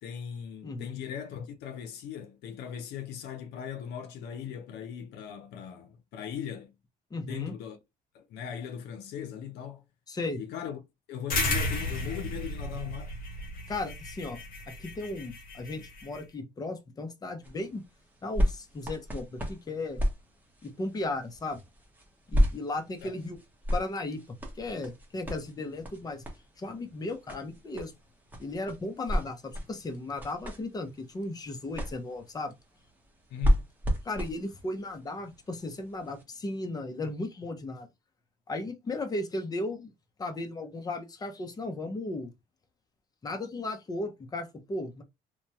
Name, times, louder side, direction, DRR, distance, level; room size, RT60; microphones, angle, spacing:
voice 1, 0.0-6.7 7.2-7.8 8.1-9.8 10.4-10.8 11.1-13.1 23.0-23.2 33.3-33.7, left 9 dB, 80° left, 0.7 m, -39 dB
voice 2, 0.6-1.0 7.1-7.5 10.1-10.4 13.7-14.4 14.7-17.8 18.2-20.0 20.6-21.6 22.3-23.4 23.7-26.2 26.6-27.9 28.4-32.5 34.0-37.9 38.5-39.9 40.2-42.3 43.2-45.0, left 2 dB, 20° left, 0.7 m, -36 dB
sound 1, 11.3-16.2, left 2 dB, 55° left, 1.0 m, -34 dB
sound 2, 17.4-36.2 36.9-37.0, equal, 10° right, 0.9 m, -33 dB
2.9 x 2.2 x 2.7 m
cardioid pair, 110°, 17 cm